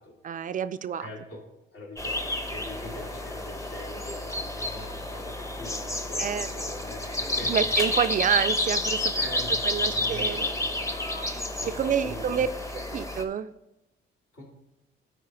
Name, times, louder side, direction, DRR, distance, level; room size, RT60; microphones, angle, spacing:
voice 1, 0.2-1.1 6.2-6.5 7.4-9.1 9.6-10.5 11.2-12.5 12.9-13.5, right 8 dB, 40° right, 12 dB, 0.4 m, -28 dB
voice 2, 1.0-1.4 1.7-7.8 9.1-10.8 11.5-12.9 14.3-14.4, left 2 dB, 70° left, -2 dB, 2.8 m, -42 dB
sound 1, 2.0-13.2, left 1 dB, 15° left, 0.9 m, -30 dB
sound 2, 5.4-5.9 6.8-7.5 8.9-9.6 10.5-11.5, left 3 dB, 40° left, 3.4 m, -48 dB
12.0 x 4.8 x 3.8 m, 0.92 s
cardioid pair, 90°, 20 cm